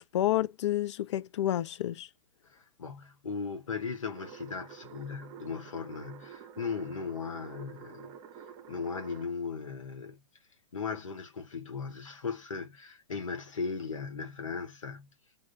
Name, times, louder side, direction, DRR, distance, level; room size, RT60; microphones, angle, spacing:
voice 1, 0.0-2.1, left 13 dB, 65° left, 0.4 m, -29 dB
voice 2, 2.5-8.2 8.7-10.2 10.7-15.1, left 5 dB, 85° left, 1.0 m, -37 dB
sound 1, 4.1-9.2, right 8 dB, 35° right, 0.7 m, -48 dB
2.5 x 2.3 x 3.2 m
hypercardioid pair, 120°, 16 cm